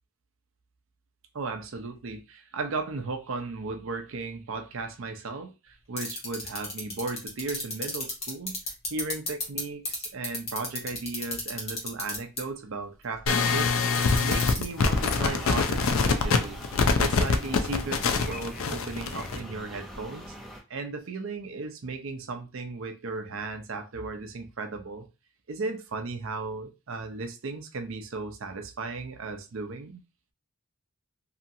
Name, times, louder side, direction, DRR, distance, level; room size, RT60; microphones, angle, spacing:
voice 1, 1.3-8.6 8.9-13.7 14.2-16.6 17.0-20.4 20.7-25.1 25.5-30.0, right 3 dB, 65° right, 0.5 m, -36 dB
sound 1, 6.0-9.6 9.8-12.4 13.9-14.6, left 4 dB, 30° left, 1.1 m, -31 dB
sound 2, 13.3-19.4, left 4 dB, 70° left, 0.4 m, -24 dB
sound 3, 14.8-20.6, equal, ahead, 0.6 m, -41 dB
2.8 x 2.5 x 2.6 m
head